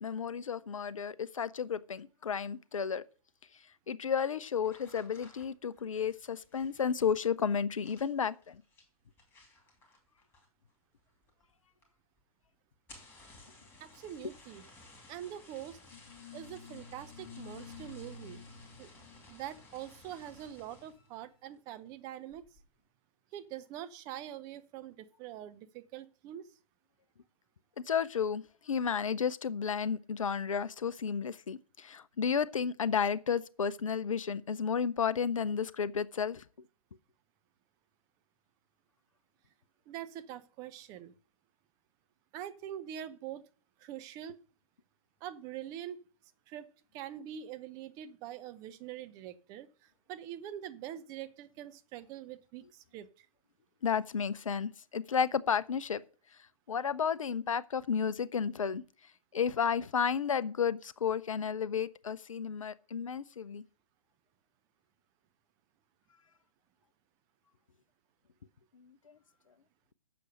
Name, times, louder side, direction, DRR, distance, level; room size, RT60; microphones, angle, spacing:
voice 1, 0.0-3.0 3.9-8.6 27.9-36.4 53.8-56.0 56.7-58.8 59.3-63.6, left 7 dB, 65° left, 0.7 m, -32 dB
sound 1, 4.6-10.7 11.0-11.5 11.8-11.9 12.2-12.3 12.7-21.1 21.5-21.9 22.3-22.7, left 2 dB, 10° left, 2.8 m, -57 dB
voice 2, 13.8-14.6 15.1-15.8 16.3-18.4 18.8-18.9 19.3-22.4 23.3-26.5 39.9-41.1 42.3-43.4 43.8-44.4 45.2-46.0 46.5-53.3, right 11 dB, 20° right, 0.7 m, -44 dB
sound 2, 15.9-21.1, left 6 dB, 35° left, 1.1 m, -52 dB
8.2 x 6.9 x 6.3 m
figure-of-eight pair, 130°, 18 cm